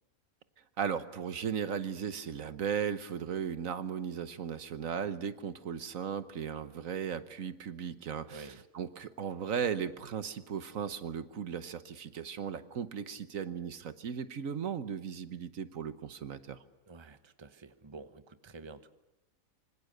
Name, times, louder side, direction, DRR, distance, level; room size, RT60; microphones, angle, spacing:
voice 1, 0.8-16.6, right 7 dB, 75° right, 12 dB, 1.4 m, -36 dB
voice 2, 16.9-18.9, right 4 dB, 20° right, 10 dB, 1.0 m, -49 dB
26.0 x 25.0 x 6.7 m, 0.95 s
omnidirectional pair, 1.4 m